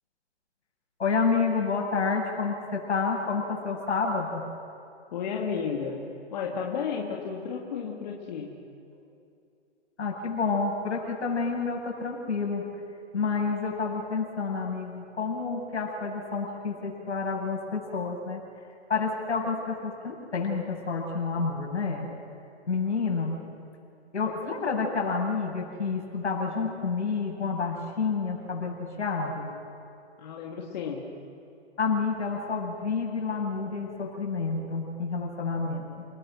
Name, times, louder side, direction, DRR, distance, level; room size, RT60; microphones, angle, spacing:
voice 1, 1.0-4.4 10.0-12.7 13.1-18.4 18.9-22.1 22.7-23.3 24.1-29.5 31.8-36.1, left 4 dB, 80° left, -1 dB, 7.9 m, -29 dB
voice 2, 5.1-6.0 6.3-8.5 30.2-31.1, left 6 dB, 40° left, -1 dB, 2.3 m, -32 dB
30.0 x 20.0 x 6.4 m, 2.6 s
hypercardioid pair, 160°, 34 cm